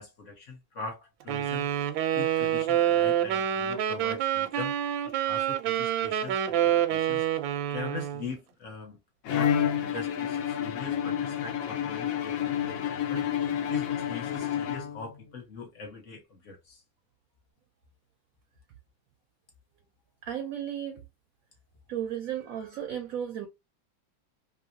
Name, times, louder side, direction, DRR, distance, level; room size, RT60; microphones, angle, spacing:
voice 1, 0.0-1.8 2.1-9.0 9.3-9.5 9.9-16.8, left 4 dB, 45° left, 1.2 m, -42 dB
Wind instrument woodwind instrument, 1.3-8.3, right 10 dB, 85° right, 1.3 m, -27 dB
Bowed string instrument, 9.2-15.3, left 9 dB, 70° left, 0.8 m, -29 dB
voice 2, 20.2-21.0 21.9-23.5, right 10 dB, 70° right, 0.8 m, -34 dB
3.0 x 2.8 x 2.7 m
omnidirectional pair, 2.0 m